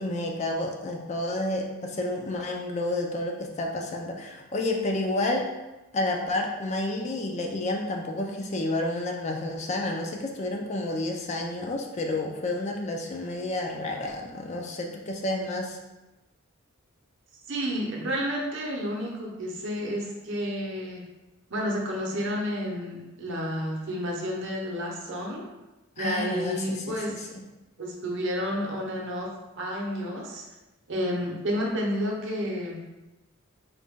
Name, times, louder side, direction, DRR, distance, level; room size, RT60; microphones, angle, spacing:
voice 1, 0.0-5.5 5.9-15.8 26.0-27.2, left 2 dB, 30° left, 2 dB, 0.3 m, -30 dB
voice 2, 17.5-21.0 21.5-25.4 26.0-27.1 27.8-29.3 29.6-30.4 30.9-32.8, equal, 60° right, -1 dB, 0.7 m, -30 dB
3.9 x 2.2 x 3.5 m, 1.0 s
head